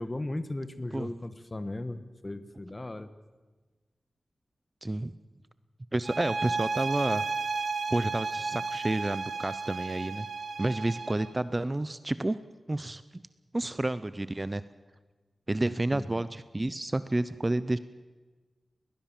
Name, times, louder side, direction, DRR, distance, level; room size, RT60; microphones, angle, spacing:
voice 1, 0.0-3.1 15.9-16.1, left 2 dB, 25° left, 11 dB, 1.3 m, -36 dB
voice 2, 4.8-5.1 5.9-7.2 7.9-10.3 10.6-12.4 12.7-13.2 13.5-14.6 15.5-17.8, right 2 dB, 20° right, 14 dB, 0.6 m, -30 dB
sound 1, 6.0-11.3, right 4 dB, 60° right, 2.9 m, -33 dB
21.5 x 19.0 x 7.3 m, 1.3 s
wide cardioid pair, 120°, 0 cm